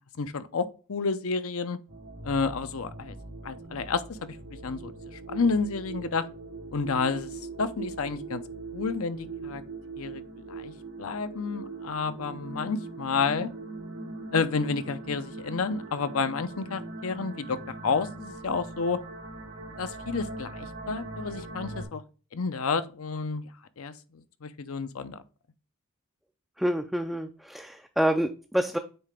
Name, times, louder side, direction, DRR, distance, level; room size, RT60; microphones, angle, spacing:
voice 1, 0.2-1.8 2.2-3.1 3.4-4.4 4.6-6.2 6.7-7.3 7.6-8.4 8.7-9.6 10.0-10.2 10.5-10.7 11.0-13.5 14.3-19.0 19.8-22.0 22.3-23.5 23.8-25.2, left 4 dB, 70° left, 0.6 m, -30 dB
sound 1, 1.9-21.9, right 3 dB, 90° right, 3.0 m, -41 dB
voice 2, 26.6-28.8, equal, ahead, 0.4 m, -27 dB
8.7 x 3.3 x 3.4 m
head